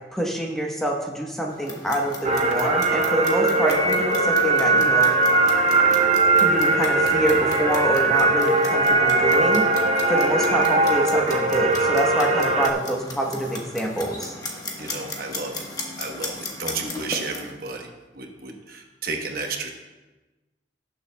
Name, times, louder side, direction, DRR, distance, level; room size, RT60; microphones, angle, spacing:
voice 1, 0.1-5.1 6.4-9.7 10.1-14.3, right 1 dB, ahead, -1 dB, 1.0 m, -26 dB
Clock, 1.5-17.5, left 2 dB, 20° left, 1.1 m, -37 dB
sound 1, 2.2-12.7, right 2 dB, 35° right, 0.5 m, -20 dB
voice 2, 14.8-15.7 16.0-19.7, right 3 dB, 55° right, 2 dB, 1.0 m, -32 dB
17.0 x 6.8 x 2.2 m, 1.1 s
head